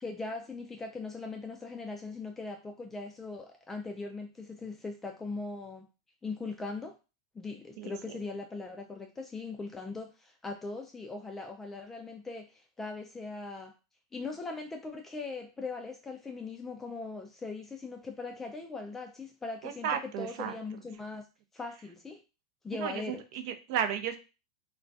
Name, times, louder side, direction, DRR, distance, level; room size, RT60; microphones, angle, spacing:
voice 1, 0.0-5.9 6.2-7.0 7.4-13.7 14.1-21.2 21.5-22.2 22.6-23.2, left 3 dB, 15° left, 3 dB, 0.3 m, -40 dB
voice 2, 7.8-8.2 19.6-20.5 22.8-24.2, right 8 dB, 55° right, 8 dB, 0.4 m, -34 dB
2.3 x 2.1 x 2.5 m, 0.30 s
hypercardioid pair, 100°, 2 cm